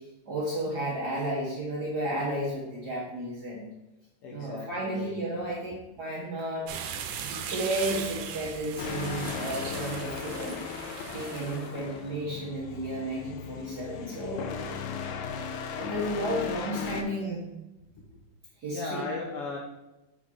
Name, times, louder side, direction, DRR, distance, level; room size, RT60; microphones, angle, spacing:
voice 1, 0.2-3.7 4.3-6.7 7.2-10.7 11.1-14.5 15.1-17.4 18.6-19.1, right 1 dB, 50° right, -5 dB, 1.3 m, -33 dB
voice 2, 4.2-5.3 7.1-7.2 8.4-8.5 10.3-10.4 14.5-14.7 18.0-18.1 18.7-19.6, left 3 dB, 70° left, -1 dB, 1.4 m, -38 dB
sound 1, 6.7-11.8, right 8 dB, 90° right, 2.1 m, -38 dB
sound 2, 8.8-17.0, left 6 dB, 85° left, 2.1 m, -37 dB
6.1 x 4.0 x 6.2 m, 0.96 s
omnidirectional pair, 3.4 m